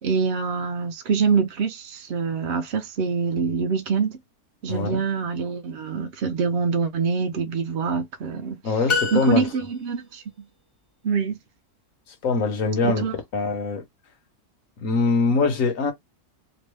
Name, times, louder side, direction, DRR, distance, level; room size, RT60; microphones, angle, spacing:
voice 1, 0.0-4.2 4.6-8.8 9.1-10.2 11.0-11.4 12.8-13.1, right 5 dB, 65° right, 0.6 m, -25 dB
voice 2, 4.7-5.0 8.6-9.5 12.2-13.8 14.8-15.9, left 4 dB, 60° left, 1.4 m, -23 dB
sound 1, 8.9-10.0, left 4 dB, 40° left, 0.4 m, -27 dB
3.1 x 2.6 x 3.3 m
omnidirectional pair, 1.6 m